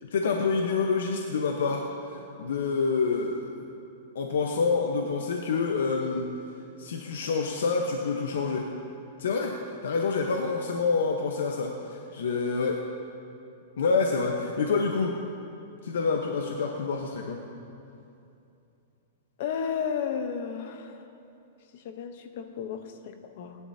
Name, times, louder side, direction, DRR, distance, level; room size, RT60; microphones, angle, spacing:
voice 1, 0.0-3.6 4.1-6.4 6.8-8.7 9.2-12.8 13.8-15.2 15.8-17.4, left 4 dB, 90° left, 2 dB, 1.0 m, -27 dB
voice 2, 19.4-20.8 21.8-23.6, left 7 dB, 45° left, 7 dB, 0.9 m, -33 dB
28.5 x 11.0 x 2.8 m, 2.7 s
supercardioid pair, 170°, 0 cm